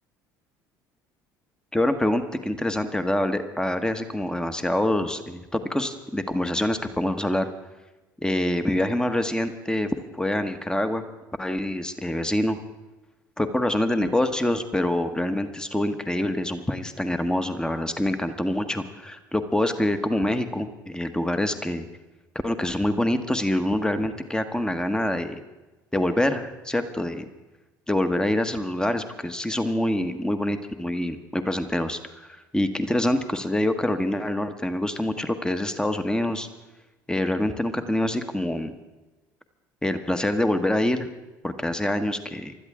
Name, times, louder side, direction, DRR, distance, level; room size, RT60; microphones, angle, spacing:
voice 1, 1.7-7.5 8.2-11.0 11.4-12.6 13.4-21.8 22.4-25.4 25.9-27.3 27.9-32.3 32.5-36.5 37.1-38.7 39.8-41.1 41.4-42.5, left 1 dB, 5° left, 9 dB, 1.4 m, -25 dB
25.0 x 13.0 x 3.7 m, 1.1 s
figure-of-eight pair, 60°, 11 cm